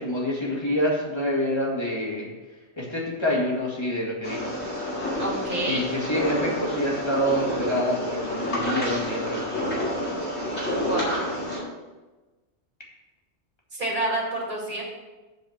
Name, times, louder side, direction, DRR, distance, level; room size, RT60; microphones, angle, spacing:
voice 1, 0.0-2.3 2.8-4.5 5.7-9.7, left 1 dB, 25° left, -3 dB, 2.2 m, -27 dB
sound 1, 4.2-11.6, equal, 70° left, 2.9 m, -29 dB
voice 2, 5.2-5.9 10.9-11.1 13.7-14.8, right 1 dB, 45° right, -3 dB, 2.7 m, -28 dB
7.9 x 4.9 x 7.3 m, 1.2 s
omnidirectional pair, 1.2 m